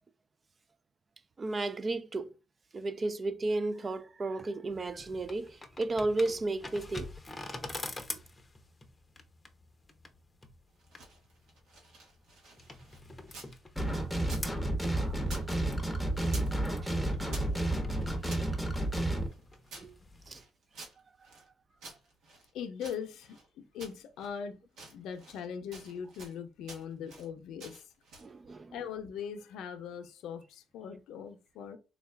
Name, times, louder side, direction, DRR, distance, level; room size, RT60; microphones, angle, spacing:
voice 1, 1.4-2.3 2.7-7.1 14.9-15.5 16.8-17.0 17.5-17.6 19.8-19.9 20.3-20.4 28.2-28.8, right 2 dB, 35° right, 0.4 m, -34 dB
sound 1, 4.7-20.4, left 2 dB, 20° left, 0.6 m, -47 dB
sound 2, 10.7-13.6 13.8-15.5 15.7-16.6 16.8-18.5 19.0-21.5 21.8-23.5 23.8-24.4 24.7-25.5 25.7-26.4 26.7-27.3 27.6-28.3, right 3 dB, 85° right, 1.1 m, -50 dB
sound 3, 13.8-19.3, right 1 dB, ahead, 0.9 m, -31 dB
voice 2, 22.5-24.6 24.9-27.8 28.7-31.8, left 7 dB, 85° left, 0.6 m, -41 dB
3.6 x 2.3 x 3.3 m
cardioid pair, 90°, 0 cm